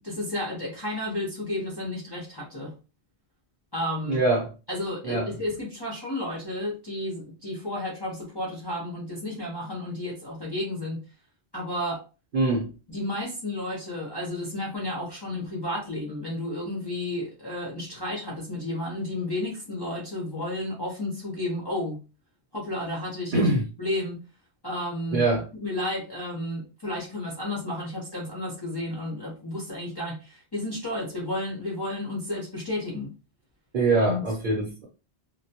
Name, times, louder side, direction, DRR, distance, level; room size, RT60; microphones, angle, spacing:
voice 1, 0.0-2.7 3.7-4.2 4.7-11.0 11.5-12.0 12.9-22.0 22.5-23.5 23.8-24.2 24.6-25.2 25.6-33.1 34.0-34.2, left 1 dB, 30° left, -5 dB, 0.6 m, -32 dB
voice 2, 4.1-4.5 5.0-5.3 12.3-12.7 23.3-23.7 25.1-25.5 33.7-34.9, right 2 dB, 50° right, -3 dB, 0.8 m, -23 dB
2.1 x 2.1 x 2.7 m, 0.32 s
omnidirectional pair, 1.1 m